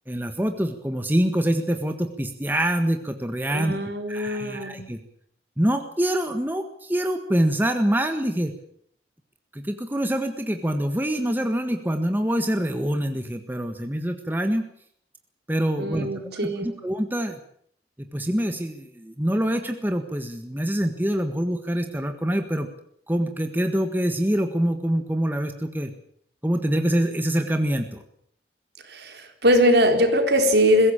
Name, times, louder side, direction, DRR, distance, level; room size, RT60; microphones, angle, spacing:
voice 1, 0.1-3.8 4.1-5.0 5.6-8.5 9.5-14.6 15.5-16.1 16.4-17.4 18.1-22.7 23.1-25.9 26.4-28.0, right 1 dB, 10° right, 6 dB, 1.5 m, -25 dB
voice 2, 3.5-4.8 15.8-16.7 28.8-30.9, equal, 65° right, 5 dB, 4.1 m, -21 dB
22.0 x 16.5 x 8.9 m, 0.65 s
head